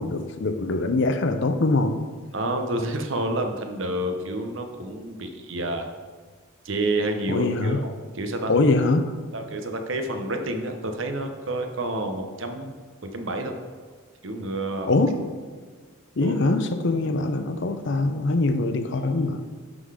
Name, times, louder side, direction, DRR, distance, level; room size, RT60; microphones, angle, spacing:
voice 1, 0.0-2.0 7.3-7.8 8.4-9.2 14.8-15.2 16.2-19.4, left 2 dB, 55° left, 8 dB, 0.6 m, -23 dB
voice 2, 2.3-5.9 6.6-7.9 8.2-8.5 9.3-12.7 13.0-13.5 14.2-14.9 16.2-16.3, right 1 dB, 60° right, 5 dB, 0.8 m, -29 dB
11.0 x 3.9 x 4.9 m, 1.5 s
head